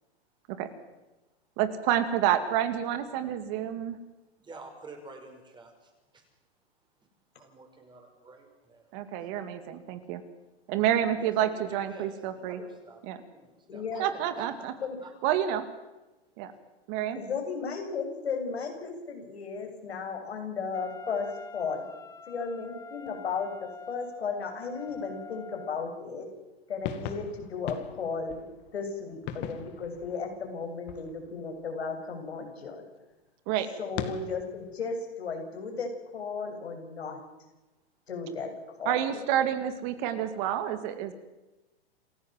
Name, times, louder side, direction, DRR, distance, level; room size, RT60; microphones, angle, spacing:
voice 1, 1.6-4.0 8.9-10.2 10.7-12.6 13.0-13.2 14.0-14.7 15.2-15.6 16.4-16.5 16.9-17.2 33.5-33.7 38.9-41.1, right 10 dB, 45° right, 10 dB, 2.6 m, -28 dB
voice 2, 4.4-6.2 7.4-9.3 11.2-14.4 14.8-15.1, right 3 dB, 15° right, 4 dB, 5.6 m, -49 dB
voice 3, 13.7-14.1 14.8-15.0 17.2-21.3 21.5-21.8 22.3-26.3 26.7-28.5 28.7-32.8 33.8-37.2 38.1-38.5 38.8-39.2, left 5 dB, 85° left, 4 dB, 7.0 m, -35 dB
Wind instrument woodwind instrument, 20.7-26.0, left 3 dB, 10° left, 1.3 m, -45 dB
sound 1, 26.8-31.6 33.9-34.8, left 9 dB, 35° left, 2.4 m, -40 dB
28.0 x 15.5 x 7.7 m, 1.1 s
hypercardioid pair, 130°, 31 cm